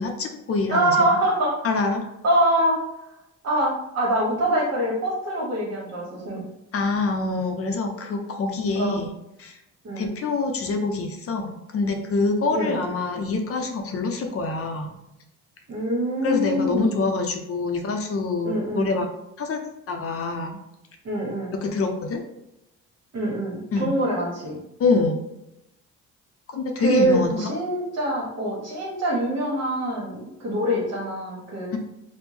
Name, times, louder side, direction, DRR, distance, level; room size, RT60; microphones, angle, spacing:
voice 1, 0.0-1.2 1.6-2.0 6.7-9.1 9.4-9.6 10.0-14.9 16.2-19.1 19.4-19.6 19.9-20.6 21.6-22.2 23.7-24.0 24.8-25.2 26.5-27.5 31.7-31.8, left 3 dB, 50° left, 4 dB, 0.6 m, -25 dB
voice 2, 0.7-1.6 2.2-2.8 3.4-6.4 8.8-9.0 9.8-10.1 12.5-12.8 15.7-17.0 18.4-19.0 21.0-21.6 23.1-24.6 26.8-31.7, right 1 dB, 60° right, -2 dB, 1.3 m, -24 dB
3.3 x 2.1 x 3.3 m, 0.87 s
cardioid pair, 90°, 30 cm